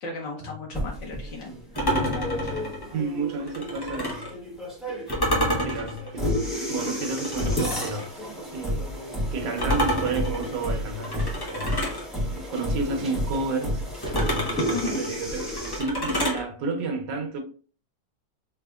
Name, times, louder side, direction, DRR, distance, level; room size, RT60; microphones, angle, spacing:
voice 1, 0.0-2.1 14.7-15.0, left 4 dB, 85° left, 1.5 m, -36 dB
sound 1, 0.7-15.8, equal, ahead, 1.1 m, -31 dB
sound 2, 1.7-4.3 5.1-8.1 9.6-12.0 14.0-16.4, equal, 30° left, 0.4 m, -29 dB
voice 2, 2.9-4.2 5.6-6.3 6.7-8.1 8.5-8.9 9.3-11.7 12.3-13.8 14.1-17.4, right 3 dB, 80° right, 1.4 m, -31 dB
3.8 x 3.4 x 2.3 m
omnidirectional pair, 1.9 m